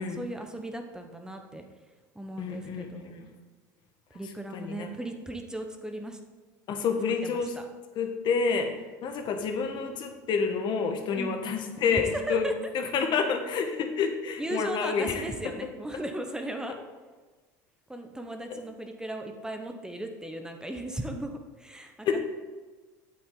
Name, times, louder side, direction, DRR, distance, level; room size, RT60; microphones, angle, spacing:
voice 1, 0.0-1.6 2.1-3.2 4.1-6.2 7.2-7.6 11.1-11.4 11.9-12.0 12.3-12.5 14.4-16.8 17.9-22.2, right 1 dB, 5° right, 5 dB, 1.0 m, -37 dB
voice 2, 2.4-2.9 3.2-3.3 4.5-4.9 6.7-7.5 8.0-8.7 9.0-12.5 12.7-15.2 18.5-18.6 22.0-22.2, left 5 dB, 50° left, 5 dB, 1.4 m, -28 dB
8.5 x 7.8 x 3.8 m, 1.3 s
supercardioid pair, 95°, 10 cm